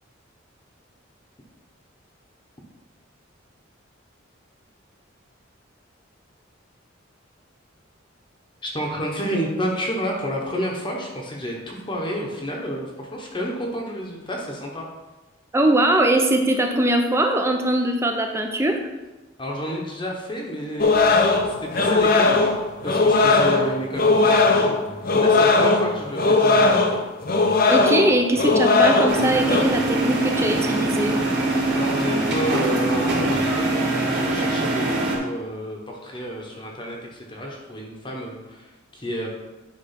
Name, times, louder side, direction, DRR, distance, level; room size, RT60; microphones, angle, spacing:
voice 1, 8.6-14.9 19.4-22.4 22.8-24.7 25.1-26.7 31.7-33.7 34.0-39.3, equal, 25° left, -1 dB, 1.1 m, -30 dB
voice 2, 15.5-18.8 27.7-31.2, right 1 dB, 15° right, 3 dB, 0.7 m, -21 dB
sound 1, 20.8-29.6, left 3 dB, 45° left, 0.7 m, -18 dB
sound 2, 29.1-35.2, right 2 dB, 55° right, 2.1 m, -23 dB
10.0 x 3.4 x 5.8 m, 1.1 s
head